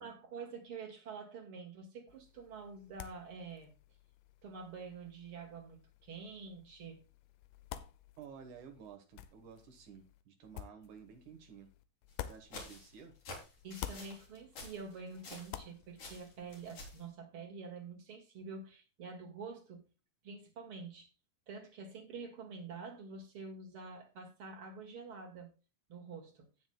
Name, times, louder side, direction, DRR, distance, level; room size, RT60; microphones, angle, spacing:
voice 1, 0.0-3.7 4.4-7.0 13.6-19.8 20.2-21.1 21.5-25.5 25.9-26.5, right 4 dB, 45° right, 1 dB, 2.3 m, -47 dB
sound 1, 2.1-13.3 13.6-17.0, left 11 dB, 80° left, 2.1 m, -51 dB
voice 2, 8.2-11.7 12.3-13.2, right 7 dB, 65° right, 6 dB, 2.5 m, -53 dB
sound 2, 12.1-15.7 16.0-17.0, left 2 dB, 50° left, 4.3 m, -49 dB
17.0 x 6.3 x 2.3 m, 0.31 s
omnidirectional pair, 4.2 m